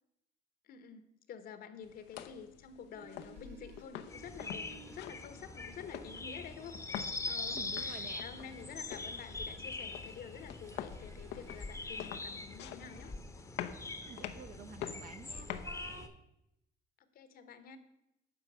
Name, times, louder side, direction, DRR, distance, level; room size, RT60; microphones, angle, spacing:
voice 1, 0.6-6.8 7.2-13.1 17.0-17.8, left 7 dB, 60° left, 11 dB, 1.2 m, -49 dB
sound 1, 1.8-16.1, left 10 dB, 85° left, 0.8 m, -47 dB
sound 2, 2.9-5.1 5.8-12.1, right 7 dB, 80° right, 1.0 m, -61 dB
sound 3, 4.1-16.1, left 3 dB, 15° left, 1.0 m, -43 dB
voice 2, 7.5-8.2 14.0-16.2, right 6 dB, 55° right, 8 dB, 1.2 m, -50 dB
9.8 x 5.9 x 8.0 m, 0.86 s
cardioid pair, 110°, 17 cm